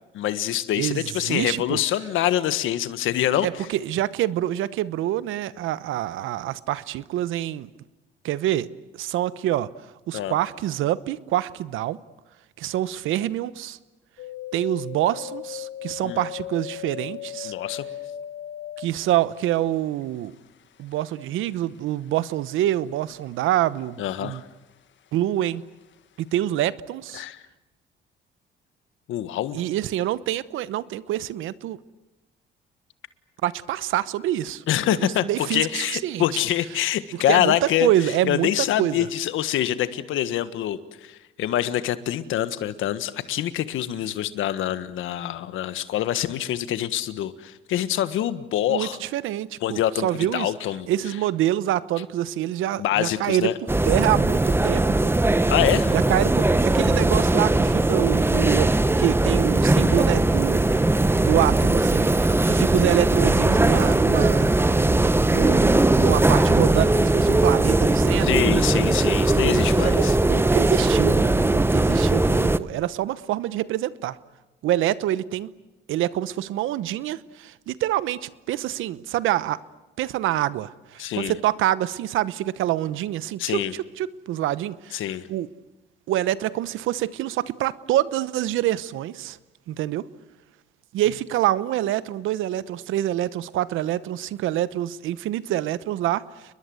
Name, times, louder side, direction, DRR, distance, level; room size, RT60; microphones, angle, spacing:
voice 1, 0.1-3.7 10.1-10.4 16.0-16.2 17.4-17.8 24.0-24.4 27.1-27.4 29.1-29.6 34.7-49.0 49.6-50.9 52.8-53.6 55.5-55.9 68.2-70.2 81.0-81.3 83.4-83.7 84.9-85.2, left 12 dB, 85° left, 1.5 m, -25 dB
voice 2, 0.8-1.8 3.4-7.7 8.2-8.7 9.0-9.7 10.1-12.0 12.6-13.8 14.5-17.5 18.8-20.3 20.8-24.4 25.1-25.6 26.2-27.2 29.5-31.8 33.4-34.6 35.2-36.4 37.3-37.6 37.8-38.5 38.8-38.9 48.7-50.5 50.9-53.5 53.8-55.2 55.9-58.7 59.0-60.8 61.2-64.5 65.0-68.4 69.8-74.2 74.6-75.5 75.9-79.6 80.0-83.6 84.0-85.0 85.3-85.5 86.1-89.4 89.7-90.1 90.9-96.2, right 13 dB, 90° right, 1.0 m, -26 dB
sound 1, 14.2-23.6 23.8-24.7 25.1-26.0 26.4-26.5, left 11 dB, 70° left, 1.7 m, -38 dB
sound 2, 53.7-72.6, right 2 dB, 10° right, 0.9 m, -19 dB
30.0 x 21.5 x 7.9 m
cardioid pair, 90°, 20 cm